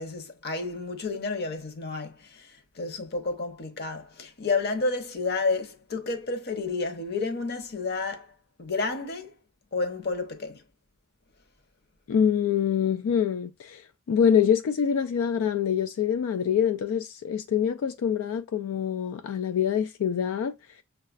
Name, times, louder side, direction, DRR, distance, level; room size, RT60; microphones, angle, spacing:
voice 1, 0.0-8.3 8.6-9.3 9.7-10.6, left 3 dB, 50° left, 0.8 m, -31 dB
voice 2, 12.1-13.8 14.1-20.5, left 8 dB, 85° left, 0.3 m, -25 dB
6.4 x 2.4 x 2.4 m
head